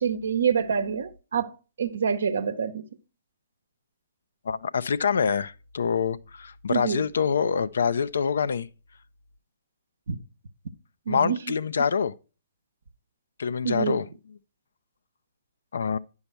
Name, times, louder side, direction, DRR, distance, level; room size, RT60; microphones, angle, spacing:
voice 1, 0.0-1.5 1.8-2.8 6.7-7.0 10.1-10.2 11.1-11.4 13.6-14.0, right 7 dB, 70° right, 0.7 m, -26 dB
voice 2, 4.5-8.7 11.1-12.1 13.4-14.1 15.7-16.0, left 6 dB, 70° left, 0.4 m, -26 dB
10.5 x 5.6 x 4.4 m
figure-of-eight pair, 125°, 0 cm